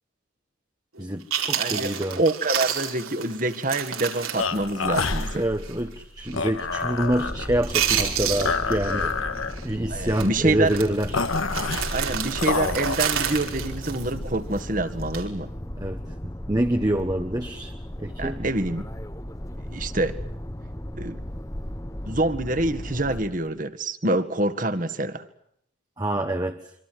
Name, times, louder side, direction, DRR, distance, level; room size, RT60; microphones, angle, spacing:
voice 1, 1.0-2.2 5.3-9.1 9.6-11.3 15.8-17.7 18.0-18.4 26.0-26.7, right 1 dB, 20° right, 4 dB, 1.3 m, -27 dB
Chewing mastication, 1.0-1.1 1.3-5.3 5.6-5.7 6.3-6.6 6.8-7.3 7.6-9.1 9.4-9.6 10.1-10.3 10.7-14.6 15.0-15.3, right 9 dB, 85° right, 5.2 m, -29 dB
voice 2, 1.6-5.5 9.9-10.7 11.9-15.5 18.2-18.9 19.7-20.2 20.9-21.2 22.1-25.3, right 2 dB, 40° right, 10 dB, 1.9 m, -26 dB
sound 1, 4.4-13.0, left 4 dB, 80° left, 2.0 m, -28 dB
sound 2, 6.2-23.5, equal, 15° left, 1.1 m, -36 dB
26.0 x 25.5 x 7.8 m, 0.71 s
head